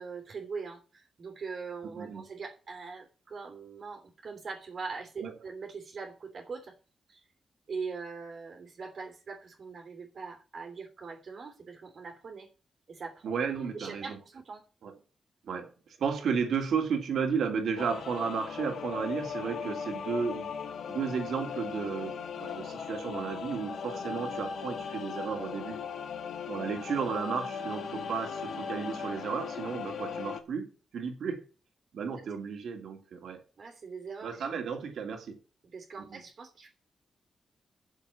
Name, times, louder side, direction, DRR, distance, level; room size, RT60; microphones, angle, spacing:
voice 1, 0.0-6.7 7.1-7.2 7.7-12.5 12.9-13.4 13.7-14.6 33.6-34.4 35.7-36.7, right 5 dB, 60° right, 3.0 m, -42 dB
voice 2, 2.0-2.3 5.2-5.3 13.2-14.2 14.8-14.9 15.4-15.7 16.0-20.5 20.9-25.8 26.5-31.4 31.9-33.4 34.2-35.4 36.1-36.2, right 6 dB, 85° right, 2.7 m, -33 dB
sound 1, 17.8-30.4, left 6 dB, 80° left, 1.5 m, -38 dB
8.2 x 7.4 x 8.3 m
cardioid pair, 100°, 0 cm